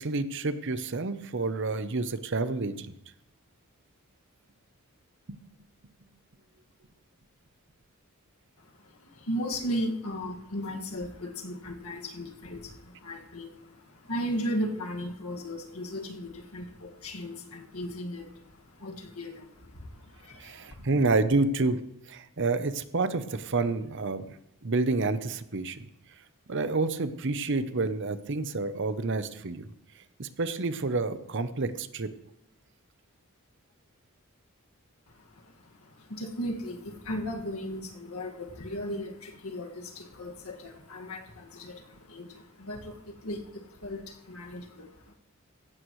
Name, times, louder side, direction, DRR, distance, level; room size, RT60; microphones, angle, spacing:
voice 1, 0.0-2.9 20.4-21.8 22.1-24.3 24.6-25.9 26.5-29.7 30.2-32.1, right 3 dB, 55° right, 12 dB, 0.8 m, -29 dB
voice 2, 8.6-20.8 35.1-45.1, equal, 80° left, 2 dB, 1.9 m, -37 dB
16.0 x 15.5 x 3.2 m, 0.82 s
head